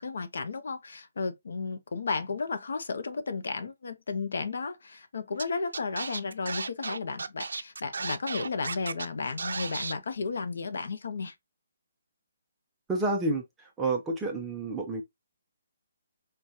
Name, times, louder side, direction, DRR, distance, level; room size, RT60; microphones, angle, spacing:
voice 1, 0.0-11.3, left 4 dB, 60° left, 0.6 m, -33 dB
Scratching (performance technique), 5.4-5.5 5.7-9.1 9.4-9.9, right 4 dB, 85° right, 0.4 m, -34 dB
voice 2, 12.9-15.0, right 2 dB, 5° right, 0.5 m, -30 dB
4.7 x 2.3 x 2.6 m
hypercardioid pair, 180°, 0 cm